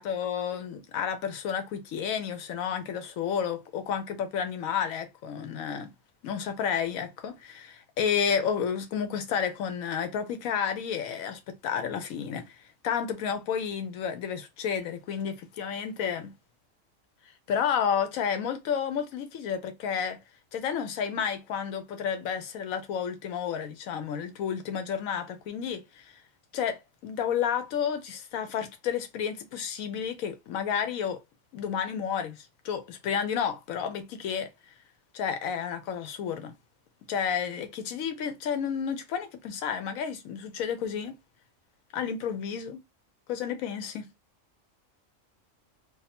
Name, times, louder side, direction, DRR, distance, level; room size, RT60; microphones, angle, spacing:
voice 1, 0.0-5.9 6.2-12.6 12.8-16.3 17.5-20.2 20.5-26.1 26.5-31.2 31.5-34.5 35.1-36.6 37.1-41.2 41.9-42.8 43.3-44.1, left 7 dB, 85° left, 1.1 m, -31 dB
2.6 x 2.5 x 4.1 m
omnidirectional pair, 1.4 m